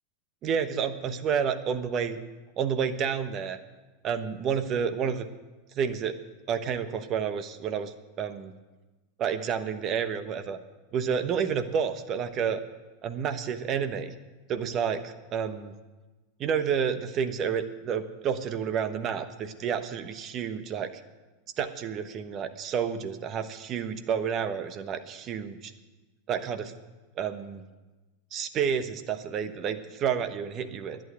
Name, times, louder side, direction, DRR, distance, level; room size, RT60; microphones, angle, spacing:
voice 1, 0.4-2.2 2.6-3.6 4.0-5.3 5.7-6.1 6.5-8.5 9.2-10.6 10.9-12.6 13.0-14.1 14.5-15.7 16.4-20.9 21.6-25.7 26.3-26.7 27.2-27.6 28.3-31.0, right 7 dB, 40° right, 10 dB, 1.2 m, -30 dB
11.0 x 9.0 x 9.3 m, 1.2 s
hypercardioid pair, 90°, 0 cm